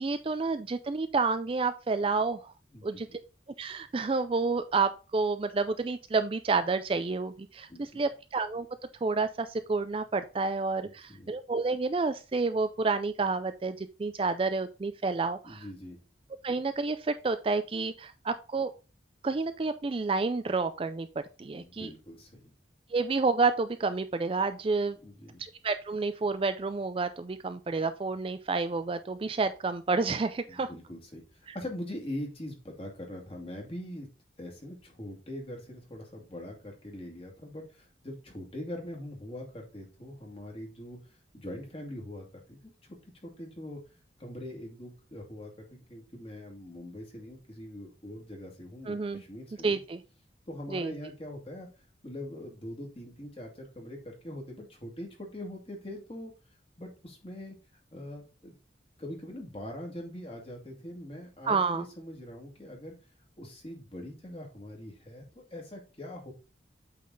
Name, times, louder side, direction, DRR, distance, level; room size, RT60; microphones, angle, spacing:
voice 1, 0.0-2.5 2.8-3.1 3.6-8.7 9.0-15.6 16.4-18.7 19.2-21.1 21.4-21.9 22.9-25.0 25.4-30.7 48.9-49.2 49.6-50.0 50.7-50.9 61.5-61.8, right 4 dB, 30° right, 10 dB, 0.4 m, -29 dB
voice 2, 2.7-3.2 7.7-8.0 10.8-11.3 15.4-16.0 21.6-22.5 25.0-25.4 30.5-34.1 34.4-41.0 41.3-43.8 44.2-49.8 50.5-51.7 52.0-56.3 56.8-57.6 57.9-58.5 59.0-63.0 63.4-66.3, left 1 dB, 30° left, 0 dB, 2.1 m, -42 dB
8.4 x 4.0 x 3.8 m, 0.32 s
head